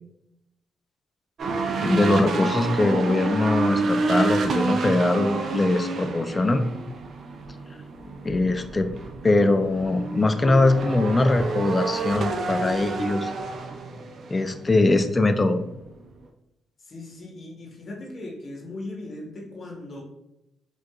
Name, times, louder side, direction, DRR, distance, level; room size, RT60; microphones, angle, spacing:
sound 1, 1.4-15.4 15.7-16.0, right 3 dB, 55° right, 0.4 m, -29 dB
voice 1, 1.8-6.6 8.2-8.9 9.2-13.3 14.3-15.6, left 2 dB, 25° left, 8 dB, 0.3 m, -22 dB
voice 2, 16.8-20.0, left 2 dB, 45° left, -1 dB, 0.9 m, -38 dB
4.5 x 2.4 x 2.2 m, 0.86 s
cardioid pair, 90°, 0 cm